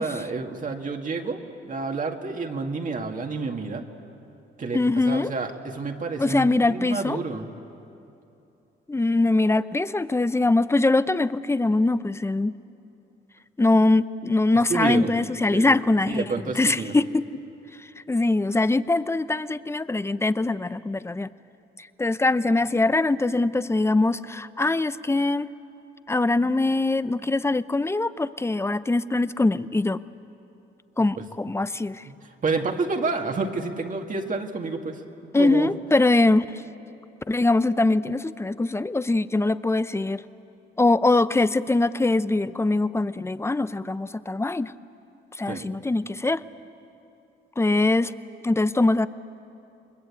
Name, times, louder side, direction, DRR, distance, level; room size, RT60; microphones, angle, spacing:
voice 1, 0.0-3.9 4.6-7.5 14.7-15.1 15.5-16.9 31.2-31.3 32.0-35.0 35.4-35.7 45.5-45.7, right 4 dB, 40° right, 3 dB, 2.1 m, -29 dB
voice 2, 4.7-5.3 6.2-7.2 8.9-12.6 13.6-16.2 16.6-17.3 18.1-21.3 21.8-25.5 26.1-30.0 31.0-32.0 35.3-36.6 37.3-40.2 40.8-44.7 45.4-46.4 47.6-48.1 48.4-49.1, left 2 dB, 15° left, 15 dB, 0.7 m, -22 dB
29.0 x 21.5 x 8.4 m, 2.8 s
cardioid pair, 90°, 20 cm